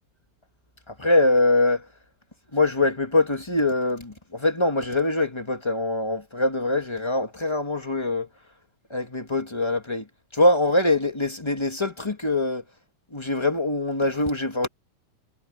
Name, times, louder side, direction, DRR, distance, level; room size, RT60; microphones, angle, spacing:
voice 1, 0.9-1.8 2.5-8.3 8.9-10.1 10.3-12.6 13.1-14.7, left 2 dB, 20° left, 0.7 m, -23 dB
omnidirectional pair, 4.0 m